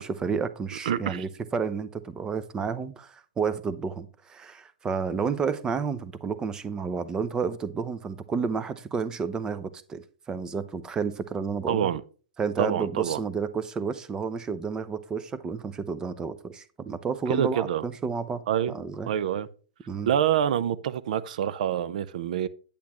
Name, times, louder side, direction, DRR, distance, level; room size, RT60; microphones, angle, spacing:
voice 1, 0.0-11.8 12.4-19.1 19.9-20.1, right 5 dB, 15° right, 0.6 m, -31 dB
voice 2, 0.9-1.2 11.7-12.0 12.6-13.2 17.3-17.8 18.5-18.7 19.1-19.5 20.1-22.5, right 10 dB, 65° right, 0.6 m, -26 dB
8.4 x 8.4 x 3.1 m
hypercardioid pair, 140°, 5 cm